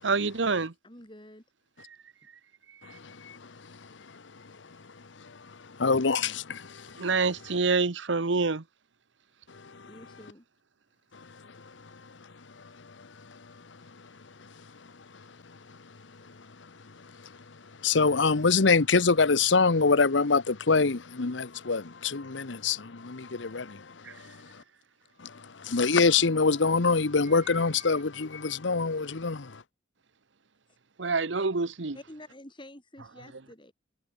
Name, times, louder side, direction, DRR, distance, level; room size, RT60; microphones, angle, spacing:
voice 1, 0.0-0.7 7.0-8.6 31.0-32.0, right 4 dB, 80° right, 1.1 m, -26 dB
voice 2, 0.8-1.4 9.8-10.4 31.9-33.7, left 1 dB, 25° left, 6.3 m, -48 dB
voice 3, 5.8-6.8 17.8-23.8 25.6-29.5, left 4 dB, 80° left, 1.0 m, -24 dB
head